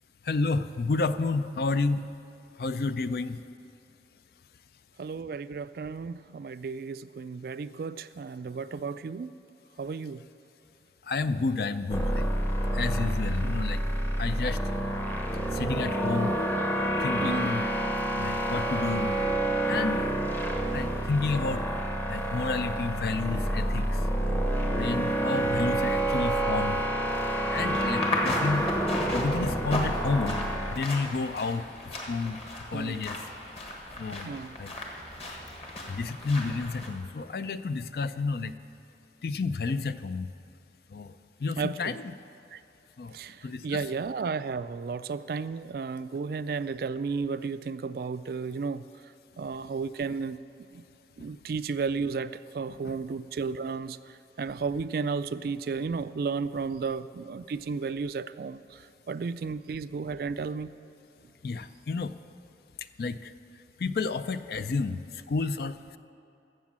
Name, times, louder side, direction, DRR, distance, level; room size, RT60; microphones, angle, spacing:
voice 1, 0.2-2.1 2.6-3.4 11.0-12.3 12.7-13.8 14.2-14.6 15.5-16.4 17.0-17.8 18.2-19.2 19.7-20.1 20.7-21.6 22.1-24.1 24.8-26.8 27.5-28.7 29.1-32.4 32.7-33.3 34.0-34.3 34.6-34.7 35.9-38.6 39.2-40.3 40.9-42.1 43.0-43.2 43.4-43.8 52.8-53.0 61.4-62.1 63.0-63.3 63.8-66.0, left 3 dB, 55° left, 13 dB, 0.4 m, -30 dB
voice 2, 5.0-9.4 9.8-10.2 13.4-13.5 17.2-17.5 32.7-33.0 34.2-34.5 41.6-41.9 42.5-42.6 43.1-48.8 49.4-50.4 50.7-50.8 51.2-54.0 54.4-60.7, right 5 dB, 55° right, 14 dB, 0.3 m, -33 dB
sound 1, 11.9-30.8, right 1 dB, 10° left, 0.8 m, -28 dB
sound 2, 27.3-36.9, left 1 dB, 35° left, 1.5 m, -36 dB
13.0 x 7.4 x 7.4 m, 2.8 s
head